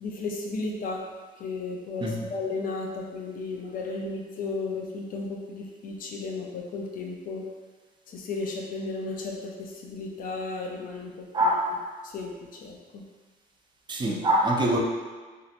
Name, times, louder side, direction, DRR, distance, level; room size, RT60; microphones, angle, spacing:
voice 1, 0.0-1.0 1.4-7.4 8.1-11.1 11.4-11.5 12.0-12.3 12.6-13.0, left 3 dB, 55° left, 1 dB, 0.6 m, -34 dB
voice 2, 11.3-11.7 13.9-14.8, right 1 dB, 25° right, -1 dB, 0.5 m, -24 dB
3.1 x 2.7 x 2.5 m, 1.4 s
cardioid pair, 110°, 17 cm